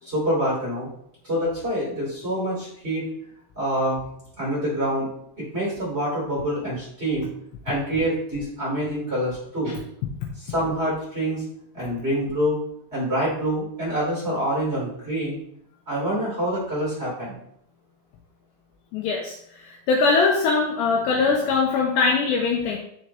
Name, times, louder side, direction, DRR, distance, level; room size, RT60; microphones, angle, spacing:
voice 1, 0.0-0.9 1.2-3.0 3.5-4.0 4.4-5.1 5.4-7.3 7.6-9.8 10.4-11.4 11.7-12.6 12.9-15.4 15.9-17.3, equal, 15° right, -6 dB, 2.4 m, -26 dB
voice 2, 18.9-22.8, left 4 dB, 85° left, 0 dB, 2.4 m, -22 dB
7.7 x 7.1 x 2.9 m, 0.73 s
omnidirectional pair, 5.9 m